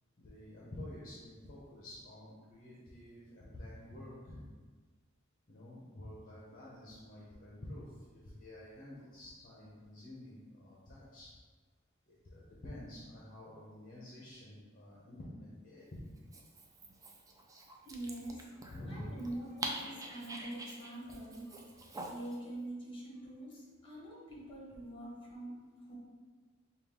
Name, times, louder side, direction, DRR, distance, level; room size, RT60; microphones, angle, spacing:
voice 1, 0.2-4.5 5.5-11.3 12.1-16.0 18.7-19.2, left 1 dB, 45° left, -6 dB, 0.7 m, -49 dB
Dog, 16.2-22.4, right 1 dB, 15° right, 0.4 m, -46 dB
voice 2, 17.8-25.9, right 1 dB, 25° left, -4 dB, 1.2 m, -45 dB
5.1 x 2.3 x 3.6 m, 1.4 s
head